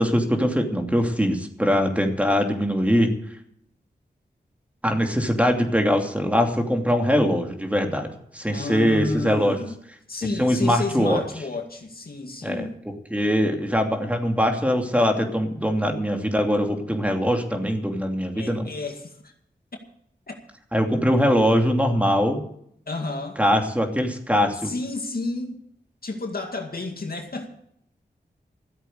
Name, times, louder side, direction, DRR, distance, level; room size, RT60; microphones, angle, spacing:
voice 1, 0.0-3.1 4.8-9.6 10.4-11.2 12.4-12.6 13.1-18.7 20.7-22.4 23.4-24.7, equal, 5° right, 3 dB, 2.7 m, -22 dB
voice 2, 8.5-9.8 10.1-12.8 18.3-19.3 20.3-20.4 21.4-21.5 22.9-23.4 24.6-25.6 26.0-27.5, left 2 dB, 55° left, 3 dB, 2.1 m, -31 dB
14.0 x 8.0 x 8.0 m, 0.70 s
cardioid pair, 45°, 18 cm